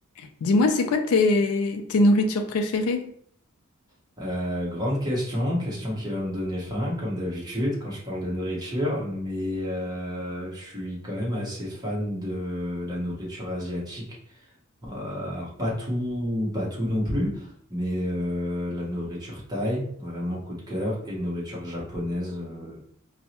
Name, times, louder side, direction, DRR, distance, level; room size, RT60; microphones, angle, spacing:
voice 1, 0.2-3.1, left 2 dB, 80° left, 5 dB, 0.4 m, -22 dB
voice 2, 4.2-14.5 14.8-22.8, equal, 20° right, -5 dB, 1.0 m, -30 dB
4.4 x 2.1 x 2.8 m, 0.64 s
head